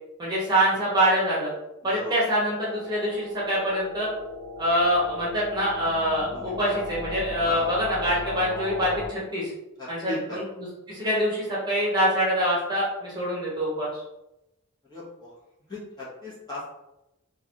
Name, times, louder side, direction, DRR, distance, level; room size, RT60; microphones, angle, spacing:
voice 1, 0.2-1.5 1.8-4.1 4.6-9.5 9.9-14.0, equal, 20° right, -7 dB, 1.1 m, -25 dB
sound 1, 2.4-9.1, left 1 dB, 75° right, 0.7 m, -37 dB
voice 2, 6.3-6.7 7.4-7.7 9.8-10.4 14.9-15.3 15.7-16.7, left 1 dB, 20° left, -8 dB, 1.3 m, -37 dB
3.9 x 2.6 x 3.0 m, 0.89 s
head